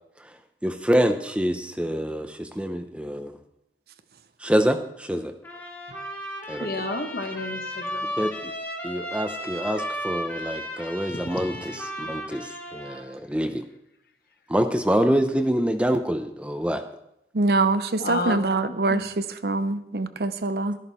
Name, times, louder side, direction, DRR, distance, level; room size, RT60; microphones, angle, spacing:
voice 1, 0.6-3.4 4.4-5.3 6.5-6.7 8.2-8.5 8.8-13.6 14.5-16.8, equal, 5° right, 7 dB, 0.6 m, -26 dB
Trumpet, 5.4-13.0, equal, 10° left, 1.8 m, -35 dB
voice 2, 6.6-8.1 11.7-11.8 18.0-18.4 18.9-19.0, left 2 dB, 55° left, 5 dB, 1.4 m, -30 dB
voice 3, 17.3-20.8, right 3 dB, 60° right, 11 dB, 0.7 m, -24 dB
13.0 x 11.0 x 4.4 m, 0.81 s
head